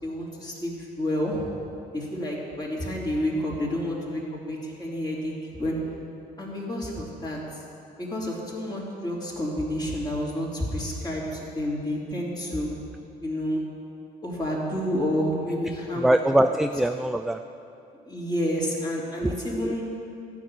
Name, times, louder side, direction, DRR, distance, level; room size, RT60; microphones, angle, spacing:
voice 1, 0.0-1.5 1.9-4.2 4.5-5.7 6.4-7.4 8.0-12.7 13.2-13.6 14.2-16.1 16.5-16.6 18.1-20.0, equal, 25° left, -4 dB, 3.3 m, -29 dB
voice 2, 16.0-17.4 19.2-20.0, right 1 dB, ahead, 7 dB, 0.3 m, -23 dB
13.0 x 6.2 x 9.8 m, 2.7 s
cardioid pair, 110°, 17 cm